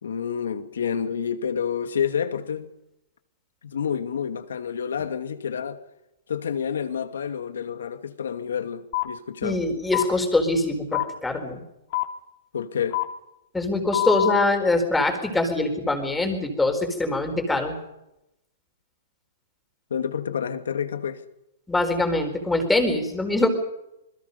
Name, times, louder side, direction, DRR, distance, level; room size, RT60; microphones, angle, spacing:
voice 1, 0.0-2.7 3.6-5.8 6.3-9.6 12.5-13.0 19.9-21.2, left 7 dB, 85° left, 2.5 m, -29 dB
sound 1, 8.9-9.1 9.9-10.1 10.9-11.0 11.9-12.0 12.9-13.0 13.9-14.4, left 16 dB, 50° left, 3.3 m, -24 dB
voice 2, 9.4-11.6 13.5-17.8 21.7-23.5, left 2 dB, 5° left, 4.4 m, -23 dB
28.0 x 21.5 x 5.4 m
hypercardioid pair, 150°, 0 cm